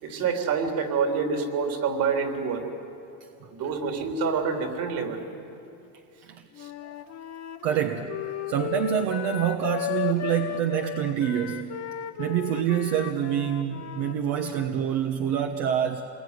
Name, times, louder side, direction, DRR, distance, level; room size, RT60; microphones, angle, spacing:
voice 1, 0.0-2.6 3.5-5.2 6.6-6.7 7.7-7.8, right 5 dB, 55° right, 4 dB, 3.7 m, -27 dB
Wind instrument woodwind instrument, 6.5-14.7, left 11 dB, 40° left, 1.0 m, -35 dB
voice 2, 7.6-8.2 8.5-11.8 12.2-16.0, right 10 dB, 75° right, 4 dB, 1.5 m, -26 dB
27.5 x 22.0 x 9.7 m, 2.7 s
supercardioid pair, 115°, 40 cm